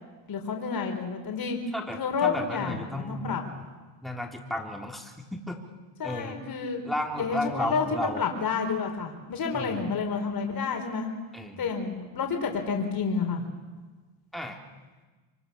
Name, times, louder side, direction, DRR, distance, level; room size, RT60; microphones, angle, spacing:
voice 1, 0.3-1.6 2.0-3.4 6.0-6.8 7.2-11.1 11.6-13.4, left 5 dB, 45° left, 4 dB, 4.5 m, -29 dB
voice 2, 1.7-3.4 4.0-5.6 6.0-6.4 6.8-8.2 9.5-9.8 11.3-11.7 14.3-14.6, left 1 dB, ahead, 1 dB, 3.7 m, -33 dB
25.5 x 24.0 x 7.1 m, 1.3 s
cardioid pair, 100°, 50 cm